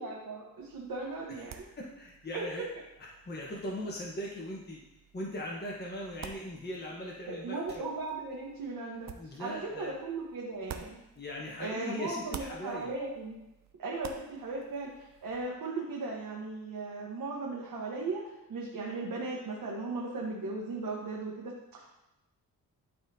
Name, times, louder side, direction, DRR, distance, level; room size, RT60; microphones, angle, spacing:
voice 1, 0.0-1.7 2.3-2.6 3.4-3.5 7.3-9.1 9.4-11.0 11.6-13.4 13.8-18.2 18.5-21.9, right 3 dB, 65° right, -3 dB, 1.3 m, -37 dB
sound 1, 0.6-11.8 12.1-15.5, right 7 dB, 50° right, 0.6 m, -51 dB
voice 2, 1.3-2.7 3.1-4.8 5.1-7.6 9.1-9.9 11.1-12.9, left 1 dB, 25° left, -3 dB, 1.2 m, -39 dB
12.0 x 4.2 x 2.8 m, 0.95 s
cardioid pair, 95°, 36 cm